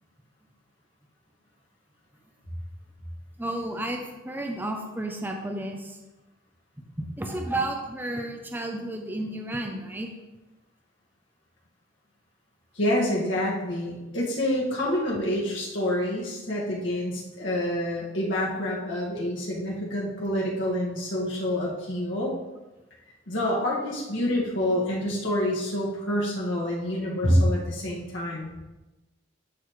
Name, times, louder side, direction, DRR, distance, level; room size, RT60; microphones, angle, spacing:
voice 1, 3.4-6.0 7.0-10.1 14.8-15.0, right 1 dB, 10° right, 2 dB, 0.6 m, -32 dB
voice 2, 12.7-22.3 23.3-28.5, left 1 dB, 75° left, -4 dB, 1.9 m, -27 dB
11.0 x 3.9 x 3.2 m, 1.1 s
head